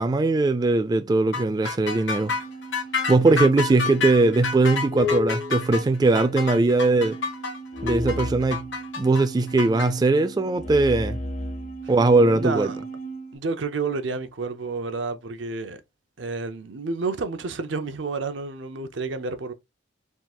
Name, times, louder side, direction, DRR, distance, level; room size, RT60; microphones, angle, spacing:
voice 1, 0.0-2.4 3.1-7.2 7.8-8.7 9.0-11.2 11.9-12.7, right 3 dB, 20° right, 0.3 m, -20 dB
sound 1, 1.3-9.9, left 5 dB, 80° left, 1.1 m, -29 dB
sound 2, 2.2-13.4, left 1 dB, 40° left, 0.5 m, -35 dB
voice 2, 12.3-12.8 13.3-15.8 16.2-19.5, right 4 dB, 90° right, 0.6 m, -30 dB
3.7 x 2.4 x 4.2 m
head